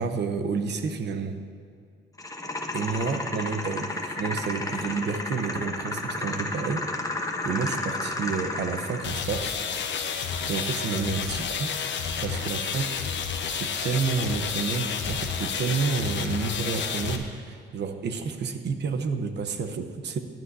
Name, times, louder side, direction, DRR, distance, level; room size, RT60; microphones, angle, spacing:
voice 1, 0.0-1.4 2.7-9.6 10.5-11.7 12.2-13.0 13.5-20.2, right 5 dB, 60° right, 8 dB, 1.0 m, -30 dB
sound 1, 2.2-9.2, left 2 dB, 15° left, 1.1 m, -32 dB
sound 2, 9.0-17.2, left 6 dB, 65° left, 1.0 m, -30 dB
16.0 x 10.5 x 2.7 m, 2.3 s
cardioid pair, 90°, 20 cm